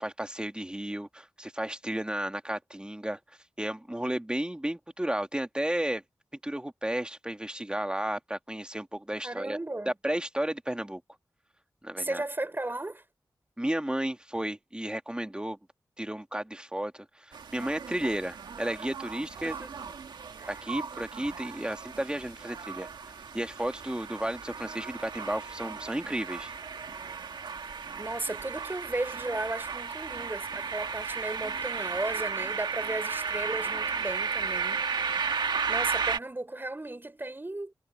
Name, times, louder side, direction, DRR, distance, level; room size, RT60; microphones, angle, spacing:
voice 1, 0.0-3.2 3.6-6.0 6.4-9.6 9.9-11.0 11.8-12.2 13.6-15.6 16.0-19.5 20.5-22.9 23.3-26.5, right 1 dB, 10° right, 2.3 m, -33 dB
voice 2, 9.2-9.9 12.0-13.0 19.4-19.7 20.4-20.5 28.0-34.8 35.7-37.7, right 2 dB, 30° right, 5.3 m, -35 dB
sound 1, 17.3-36.2, right 5 dB, 90° right, 1.7 m, -34 dB
cardioid pair, 45°, 7 cm